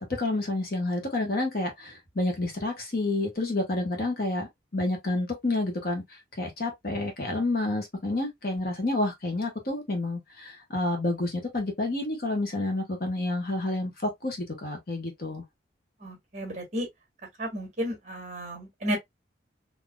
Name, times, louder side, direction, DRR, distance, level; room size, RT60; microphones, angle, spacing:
voice 1, 0.1-15.4, left 2 dB, 55° left, 1.3 m, -29 dB
voice 2, 16.0-16.9 17.4-19.0, equal, 40° right, 1.6 m, -32 dB
3.8 x 2.9 x 2.3 m
head